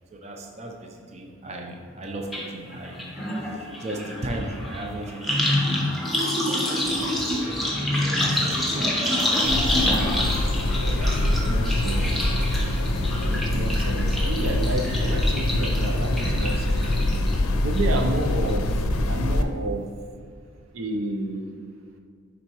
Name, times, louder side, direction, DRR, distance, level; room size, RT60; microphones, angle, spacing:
voice 1, 0.1-3.0 3.4-5.4 6.2-7.5 7.9-9.2 9.8-9.9 13.6-13.7, right 1 dB, 30° right, 1 dB, 0.6 m, -36 dB
sound 1, 2.3-2.4 2.7-17.3 17.7-18.2 18.5-18.6, left 1 dB, ahead, 0.9 m, -27 dB
sound 2, 6.8-17.7, left 1 dB, 20° left, 0.5 m, -41 dB
sound 3, 9.4-19.4, left 1 dB, 85° left, 0.5 m, -24 dB
voice 2, 10.8-12.4 13.2-16.9 17.6-18.7 19.1-19.8 20.7-21.4, right 1 dB, 75° right, 3 dB, 0.6 m, -30 dB
10.0 x 4.1 x 3.0 m, 2.2 s
head